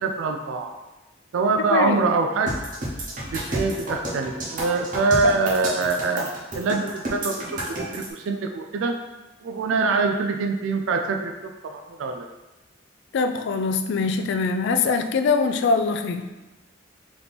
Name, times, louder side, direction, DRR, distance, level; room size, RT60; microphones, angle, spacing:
voice 1, 0.0-0.7 1.3-2.5 3.3-7.3 7.6-9.0 9.4-12.3, right 4 dB, 70° right, 4 dB, 0.3 m, -24 dB
voice 2, 1.7-2.1 13.1-16.3, left 4 dB, 60° left, 7 dB, 0.3 m, -23 dB
sound 1, 2.5-8.1, right 1 dB, 40° right, 0.9 m, -30 dB
3.5 x 2.9 x 4.0 m, 1.1 s
head